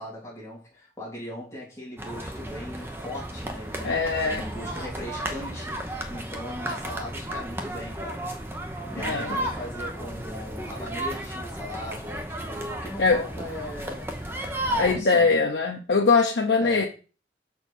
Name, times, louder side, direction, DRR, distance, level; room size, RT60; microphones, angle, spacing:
voice 1, 0.0-8.3 8.9-14.2 14.7-15.3 16.6-16.9, left 1 dB, 15° left, 2.9 m, -38 dB
sound 1, 2.0-15.0, right 1 dB, 15° right, 0.8 m, -33 dB
voice 2, 3.8-4.4 9.0-9.4 13.0-13.2 14.6-16.9, left 4 dB, 75° left, 0.7 m, -22 dB
6.3 x 4.4 x 5.3 m
head